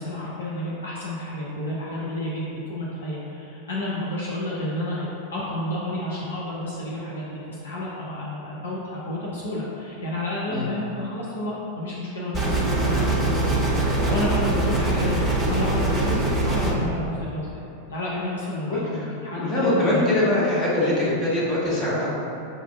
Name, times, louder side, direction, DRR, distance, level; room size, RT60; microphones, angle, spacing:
voice 1, 0.0-13.6 14.1-15.2 15.5-17.5 17.9-20.2, left 1 dB, 65° left, -6 dB, 0.6 m, -30 dB
sound 1, 12.3-16.7, right 2 dB, 15° right, 0.9 m, -23 dB
voice 2, 18.7-22.2, left 1 dB, 30° left, -7 dB, 1.2 m, -23 dB
6.7 x 2.3 x 2.4 m, 2.9 s
figure-of-eight pair, 90°, 0 cm